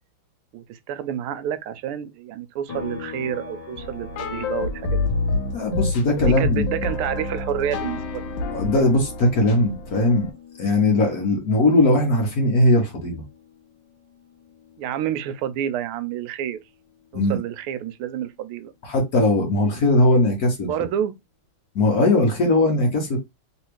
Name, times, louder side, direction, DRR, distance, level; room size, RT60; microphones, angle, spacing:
voice 1, 0.5-5.0 6.2-8.2 14.8-16.6 17.1-18.7 20.7-21.1, right 10 dB, 80° right, 1.4 m, -29 dB
sound 1, 2.7-16.2 16.6-18.8, left 6 dB, 25° left, 0.9 m, -44 dB
sound 2, 3.8-10.3, left 3 dB, 70° left, 1.3 m, -28 dB
voice 2, 5.5-6.6 8.5-10.3 10.6-13.2 17.1-17.4 18.8-20.7 21.7-23.2, left 2 dB, 55° left, 1.3 m, -19 dB
3.4 x 3.2 x 3.0 m
omnidirectional pair, 2.4 m